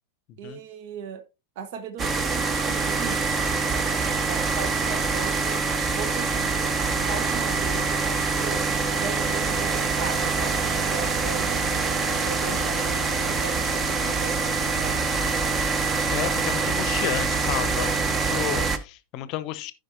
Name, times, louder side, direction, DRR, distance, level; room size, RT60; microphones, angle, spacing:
voice 1, 0.4-1.2 1.6-3.2 4.2-5.6 5.9-8.6 9.0-11.6 12.2-15.1 16.1-16.4, right 7 dB, 50° right, 0.8 m, -38 dB
sound 1, 2.0-18.8, right 4 dB, 20° right, 0.9 m, -25 dB
voice 2, 16.1-19.7, left 13 dB, 40° left, 0.7 m, -32 dB
15.5 x 5.1 x 2.6 m
figure-of-eight pair, 90°, 0 cm